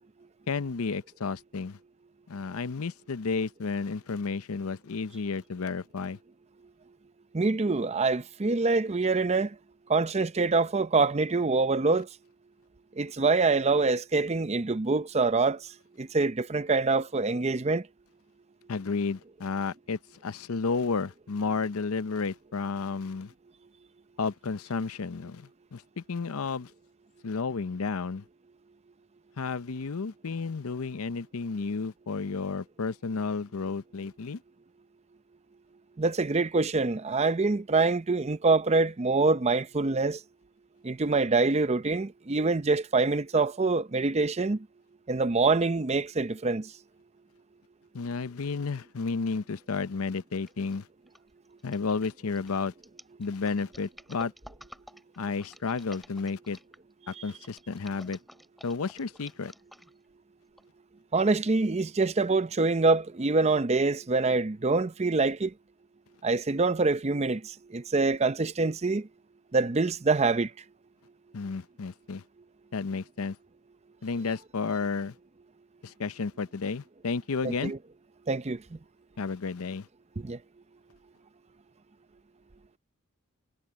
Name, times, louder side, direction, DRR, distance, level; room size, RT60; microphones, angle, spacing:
voice 1, 0.5-1.8 2.3-6.2 18.7-23.3 24.2-26.7 27.2-28.2 29.4-34.4 47.9-50.9 51.6-52.7 53.2-54.3 55.2-56.6 57.1-58.2 58.6-59.5 71.3-72.2 72.7-73.4 74.0-75.1 75.8-77.7 79.2-79.9, left 4 dB, 80° left, 0.7 m, -32 dB
voice 2, 7.3-9.5 9.9-12.1 13.0-15.6 16.0-17.8 36.0-40.2 40.8-44.6 45.1-46.7 61.1-65.5 66.2-67.4 67.7-69.1 69.5-70.5 77.4-77.8 78.3-78.6 80.2-80.4, right 3 dB, 30° right, 0.6 m, -25 dB
sound 1, 50.5-50.7 51.1-56.9 57.4-60.1 60.6-60.7, equal, ahead, 2.7 m, -52 dB
head